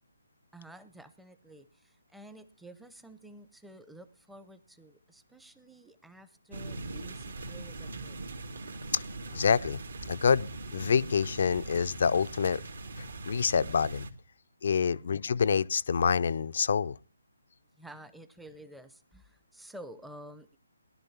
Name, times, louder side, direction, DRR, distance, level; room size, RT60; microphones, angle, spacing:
voice 1, 0.5-8.2 14.8-15.1 17.8-20.6, right 1 dB, ahead, 0.9 m, -51 dB
sound 1, 6.5-14.1, right 2 dB, 60° right, 2.5 m, -41 dB
voice 2, 9.3-9.8 10.1-12.6 13.0-14.1 14.6-16.9, left 6 dB, 50° left, 0.6 m, -27 dB
19.5 x 11.5 x 2.8 m
figure-of-eight pair, 140°, 0 cm